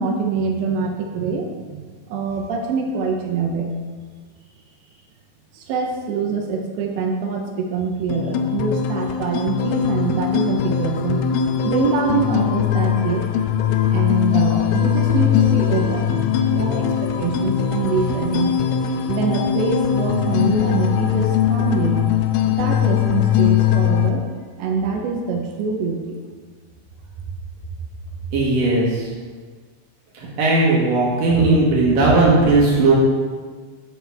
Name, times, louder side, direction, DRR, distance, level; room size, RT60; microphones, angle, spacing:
voice 1, 0.0-3.7 5.5-11.3 11.6-13.3 13.9-16.2 16.4-16.9 17.2-18.5 19.1-22.1 22.4-24.2 24.6-26.2, right 4 dB, 75° right, 2 dB, 2.7 m, -24 dB
sound 1, 8.1-24.1, left 9 dB, 85° left, 2.8 m, -20 dB
voice 2, 28.3-29.1 30.1-32.9, right 3 dB, 60° right, -4 dB, 2.4 m, -17 dB
12.0 x 7.6 x 3.4 m, 1.5 s
omnidirectional pair, 5.8 m